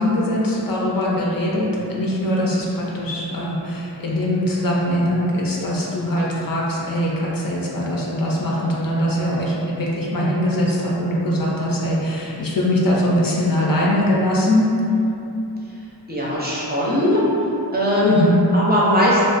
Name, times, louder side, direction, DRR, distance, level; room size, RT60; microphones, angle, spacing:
voice 1, 0.0-14.7 18.1-18.4, left 1 dB, 55° left, -5 dB, 0.5 m, -21 dB
voice 2, 16.1-17.2 17.7-19.2, left 1 dB, 25° right, -7 dB, 0.5 m, -19 dB
2.4 x 2.2 x 2.4 m, 2.9 s
wide cardioid pair, 55°, 41 cm